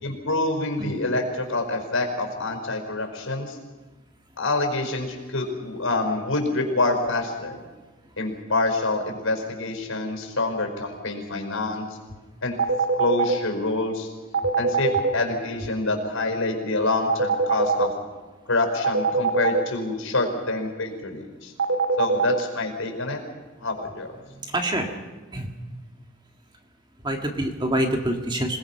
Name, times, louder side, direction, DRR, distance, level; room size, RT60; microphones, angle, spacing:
voice 1, 0.0-3.6 4.4-7.6 8.2-11.9 12.4-12.6 13.0-14.1 14.6-17.9 18.5-21.5 22.0-23.2 23.6-24.1, left 2 dB, 75° left, 4 dB, 5.1 m, -26 dB
sound 1, 12.6-13.3 14.3-15.1 17.1-17.8 18.8-19.6 21.6-22.3, right 5 dB, 75° right, 2.3 m, -21 dB
voice 2, 24.2-24.9 25.3-25.5 27.0-28.6, right 1 dB, 20° right, 3 dB, 1.8 m, -26 dB
27.5 x 20.0 x 5.8 m, 1.2 s
head